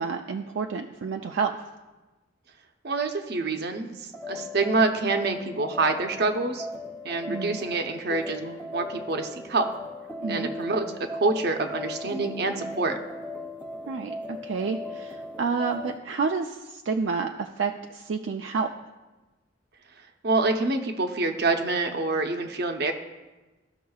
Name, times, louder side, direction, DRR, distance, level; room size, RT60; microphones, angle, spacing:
voice 1, 0.0-1.5 7.3-7.6 10.2-10.5 13.9-18.7, right 5 dB, 80° right, 3 dB, 0.4 m, -29 dB
voice 2, 2.8-3.9 4.3-6.7 7.0-9.7 10.3-10.9 11.1-13.0 20.2-22.9, right 3 dB, 60° right, 5 dB, 0.8 m, -26 dB
sound 1, 4.1-16.0, left 1 dB, 10° left, 0.7 m, -38 dB
14.5 x 5.6 x 2.3 m, 1.1 s
head